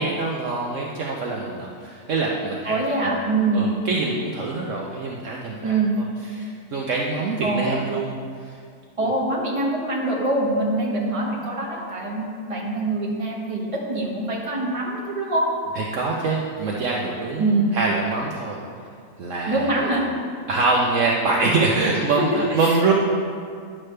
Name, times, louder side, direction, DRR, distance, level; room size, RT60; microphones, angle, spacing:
voice 1, 0.0-3.2 3.5-6.0 6.3-8.1 8.4-8.6 9.0-9.1 15.7-18.6 19.2-20.0 20.5-22.9, right 3 dB, 60° right, -3 dB, 1.1 m, -25 dB
voice 2, 2.6-3.7 5.6-5.9 7.4-7.7 9.0-15.5 17.4-17.7 19.5-20.0 22.1-22.4 22.6-22.8, right 2 dB, 20° right, -4 dB, 1.4 m, -24 dB
10.5 x 7.5 x 3.3 m, 2.2 s
omnidirectional pair, 1.6 m